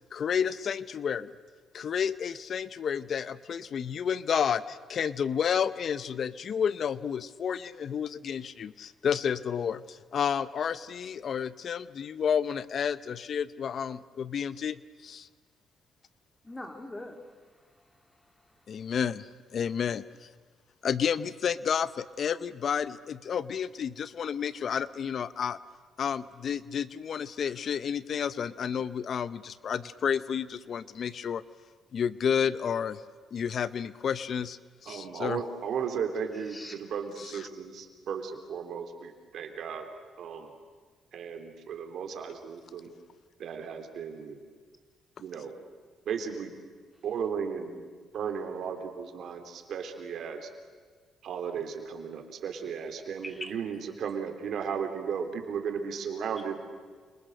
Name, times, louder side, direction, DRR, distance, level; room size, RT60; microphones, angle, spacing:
voice 1, 0.1-1.3 1.7-15.3 18.7-20.3 20.8-25.6 26.0-31.4 31.9-33.0 33.3-35.4, left 7 dB, 55° left, 16 dB, 0.7 m, -31 dB
voice 2, 16.4-18.9 36.5-36.8 53.2-53.5, left 1 dB, 20° left, 5 dB, 3.2 m, -44 dB
voice 3, 34.9-39.9 40.2-40.5 41.1-42.9 43.4-44.4 45.2-45.6 46.1-46.5 47.0-47.9 48.1-50.5 51.2-56.6, right 6 dB, 70° right, 5 dB, 3.4 m, -35 dB
29.5 x 27.0 x 6.7 m, 1.5 s
cardioid pair, 90°, 0 cm